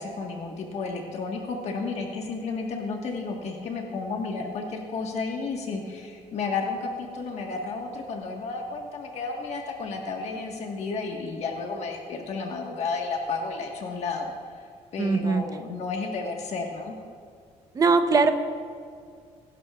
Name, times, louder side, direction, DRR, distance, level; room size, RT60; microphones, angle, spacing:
voice 1, 0.0-14.3 14.9-16.9, left 4 dB, 65° left, 1 dB, 1.5 m, -32 dB
voice 2, 15.0-15.4 17.7-18.3, right 4 dB, 30° right, 7 dB, 0.8 m, -20 dB
23.0 x 11.5 x 2.4 m, 2.2 s
cardioid pair, 125°, 12 cm